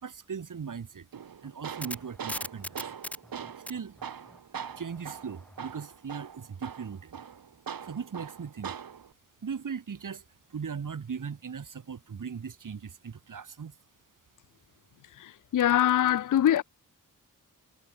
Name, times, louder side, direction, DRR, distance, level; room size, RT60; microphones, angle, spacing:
voice 1, 0.0-1.1 1.4-2.8 3.7-4.0 4.8-7.2 7.9-8.8 9.4-10.2 10.5-13.7, right 6 dB, 60° right, 5.2 m, -38 dB
Tools, 1.1-9.1, right 7 dB, 80° right, 6.4 m, -42 dB
sound 1, 1.4-5.7, left 1 dB, 5° left, 1.5 m, -40 dB
voice 2, 15.1-16.6, left 11 dB, 60° left, 0.6 m, -24 dB
wide cardioid pair, 105°, 35 cm